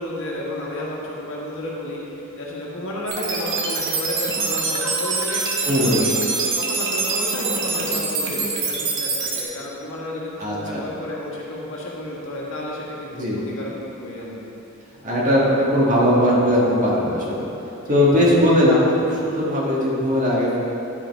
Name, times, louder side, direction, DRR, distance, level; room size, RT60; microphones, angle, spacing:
voice 1, 0.0-14.5 17.8-18.3, left 1 dB, 65° left, -4 dB, 1.5 m, -32 dB
sound 1, 3.1-9.4, right 4 dB, 60° right, 1.2 m, -25 dB
voice 2, 5.6-6.0 10.4-10.8 13.2-13.4 15.0-17.5 17.9-20.6, equal, 35° right, -5 dB, 1.5 m, -19 dB
10.0 x 5.1 x 4.5 m, 3.0 s
head